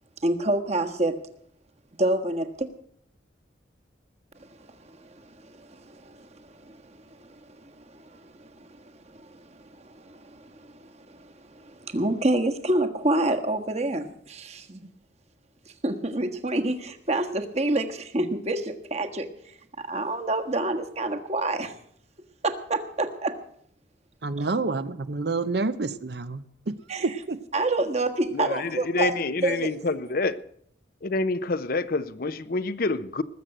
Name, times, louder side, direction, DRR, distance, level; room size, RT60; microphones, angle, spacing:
voice 1, 0.2-1.2 2.0-2.7 4.4-14.9 15.8-19.3 19.8-21.8 22.4-23.4 26.9-27.1 27.5-29.1 29.4-29.7, right 2 dB, 35° right, 1.5 m, -28 dB
voice 2, 24.2-26.7 27.0-27.4, right 3 dB, 60° right, 0.7 m, -28 dB
voice 3, 28.3-30.4 31.0-33.2, left 3 dB, 55° left, 0.7 m, -27 dB
19.5 x 7.6 x 7.8 m
head